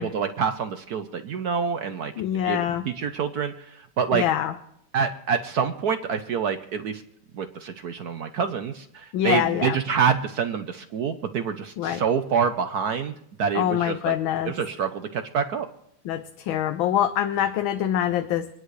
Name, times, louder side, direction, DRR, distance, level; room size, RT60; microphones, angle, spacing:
voice 1, 0.0-2.1 2.4-2.6 2.9-4.2 4.9-7.0 7.3-13.1 13.4-14.1 14.4-15.7, right 6 dB, 65° right, 8 dB, 1.0 m, -26 dB
voice 2, 2.2-2.9 4.1-4.5 9.1-9.8 11.8-12.0 13.5-14.5 16.0-18.5, left 11 dB, 75° left, 8 dB, 1.5 m, -25 dB
25.5 x 10.0 x 3.2 m, 0.76 s
omnidirectional pair, 2.3 m